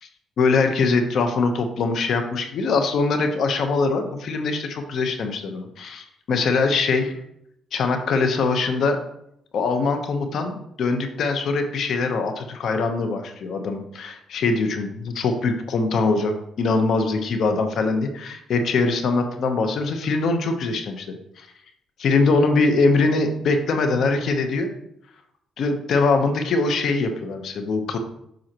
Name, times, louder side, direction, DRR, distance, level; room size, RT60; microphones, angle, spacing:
voice 1, 0.4-7.2 7.7-9.0 9.5-21.5 22.0-24.7 25.6-28.0, left 3 dB, 65° left, 6 dB, 0.9 m, -22 dB
7.8 x 5.6 x 3.0 m, 0.76 s
cardioid pair, 90°, 0 cm